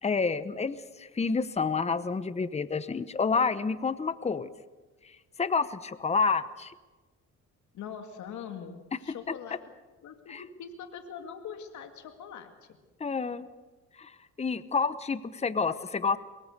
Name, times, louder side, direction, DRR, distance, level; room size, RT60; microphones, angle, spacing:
voice 1, 0.0-4.5 5.0-5.1 5.4-6.7 10.3-10.4 13.0-13.5 14.0-14.1 14.4-16.2, left 5 dB, 20° left, 13 dB, 1.0 m, -29 dB
voice 2, 7.7-9.6 10.0-12.8, left 7 dB, 75° left, 5 dB, 2.1 m, -42 dB
23.5 x 22.5 x 6.7 m, 1.3 s
cardioid pair, 90°, 30 cm